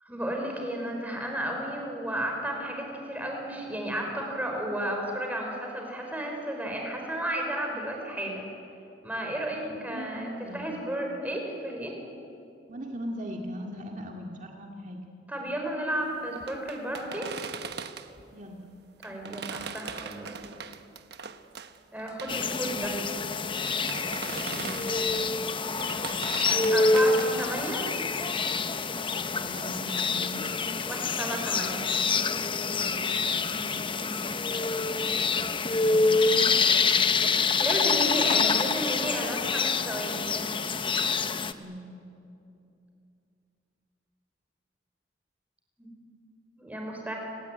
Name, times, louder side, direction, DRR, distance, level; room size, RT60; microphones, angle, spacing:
voice 1, 0.0-8.5 9.0-11.9 15.3-17.3 19.0-20.4 21.9-23.0 26.5-27.8 30.9-31.8 37.6-40.5 45.8-45.9 46.6-47.2, right 1 dB, 10° right, 1 dB, 5.3 m, -33 dB
voice 2, 9.7-10.7 12.7-15.1 18.3-18.7 24.5-24.9 29.3-30.5 32.8-33.9 35.6-36.5 41.5-41.9, equal, 45° right, 1 dB, 2.1 m, -40 dB
sound 1, 16.4-18.2 19.0-25.2 25.6-27.5, right 6 dB, 60° right, 1.2 m, -40 dB
sound 2, 22.3-41.5, left 4 dB, 30° left, 0.8 m, -26 dB
30.0 x 19.0 x 9.4 m, 2.7 s
head